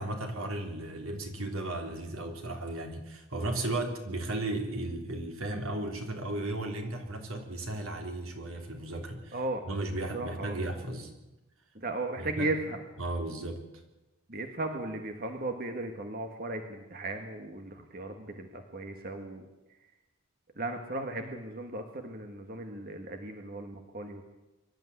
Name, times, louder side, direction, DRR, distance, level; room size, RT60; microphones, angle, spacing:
voice 1, 0.0-11.1 12.2-12.5 13.0-13.6, right 2 dB, 80° right, 3 dB, 3.6 m, -35 dB
voice 2, 9.3-9.6 10.1-10.5 11.7-12.8 14.3-19.4 20.6-24.2, right 2 dB, 45° right, 5 dB, 1.6 m, -36 dB
24.0 x 12.5 x 9.8 m, 1.0 s
head